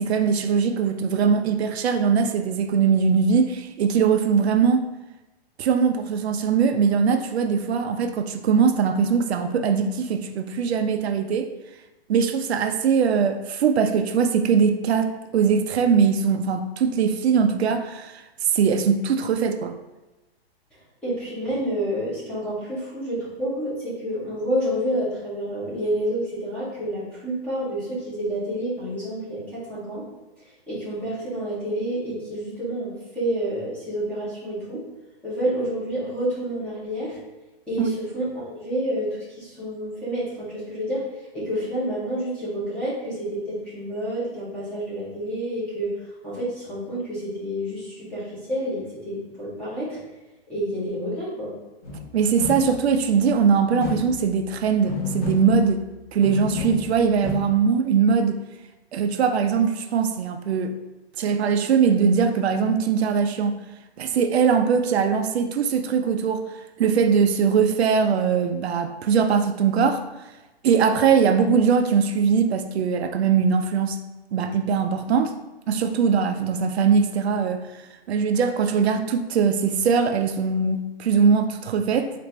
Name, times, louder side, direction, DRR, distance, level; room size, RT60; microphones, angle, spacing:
voice 1, 0.0-4.9 5.6-11.5 12.1-18.2 18.5-19.7 37.8-37.9 52.1-55.8 56.1-58.4 58.9-60.8 61.2-63.6 64.0-66.4 66.8-70.0 70.6-74.0 74.3-75.3 75.7-82.1, right 6 dB, 85° right, 7 dB, 0.5 m, -21 dB
voice 2, 21.0-30.0 30.7-34.8 35.2-37.2 37.7-41.0 41.3-45.9 46.2-50.0 50.5-51.5, equal, 5° left, -10 dB, 0.7 m, -29 dB
sound 1, 51.8-53.1 53.8-54.5 54.8-56.0 56.2-57.4, left 4 dB, 25° left, 1.3 m, -32 dB
4.1 x 2.5 x 3.2 m, 1.1 s
hypercardioid pair, 165°, 31 cm